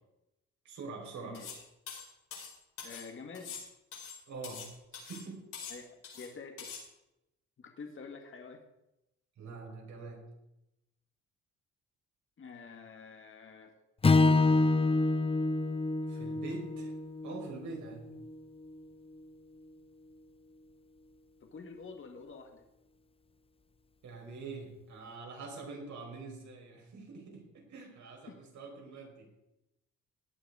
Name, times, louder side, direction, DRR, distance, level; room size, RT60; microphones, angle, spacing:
voice 1, 0.6-1.4 4.3-4.6 4.9-5.5 9.4-10.2 16.1-16.9 17.2-18.1 24.0-29.3, right 4 dB, 70° right, 0 dB, 4.9 m, -45 dB
voice 2, 1.2-1.6 2.8-3.6 5.7-6.8 7.6-8.6 12.4-13.7 14.0-14.4 21.4-22.6 28.3-28.4, left 4 dB, 40° left, 4 dB, 1.9 m, -48 dB
sound 1, 1.3-1.6 1.9-3.1 3.3-4.7 4.9-5.2 5.5-6.3 6.6-6.8, left 6 dB, 80° left, 5.3 m, -44 dB
Strum, 14.0-18.4, left 3 dB, 20° left, 0.6 m, -27 dB
17.0 x 9.3 x 4.9 m, 0.91 s
cardioid pair, 90°, 30 cm